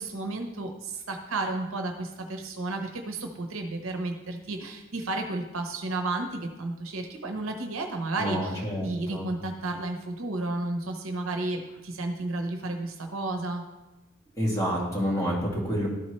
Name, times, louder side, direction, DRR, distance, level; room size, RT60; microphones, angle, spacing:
voice 1, 0.0-13.6, right 2 dB, 70° right, 4 dB, 0.8 m, -32 dB
voice 2, 8.2-9.3 14.4-15.9, equal, 15° left, -5 dB, 2.0 m, -28 dB
13.0 x 4.3 x 3.1 m, 1.0 s
head